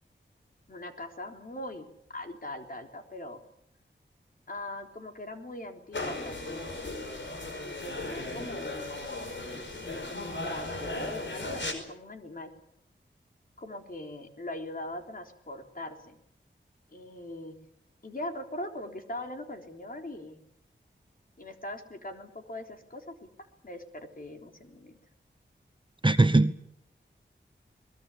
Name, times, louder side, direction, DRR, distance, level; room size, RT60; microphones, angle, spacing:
voice 1, 0.7-3.4 4.5-6.7 7.5-8.9 9.5-12.5 13.6-16.2 16.9-17.5 18.0-20.4 21.4-24.9, left 1 dB, 45° left, 4 dB, 3.7 m, -41 dB
sound 1, 5.9-11.7, left 2 dB, 70° left, 5.0 m, -36 dB
voice 2, 26.0-26.6, right 2 dB, 25° right, 11 dB, 1.1 m, -21 dB
22.0 x 21.0 x 8.5 m, 0.74 s
wide cardioid pair, 65°, 20 cm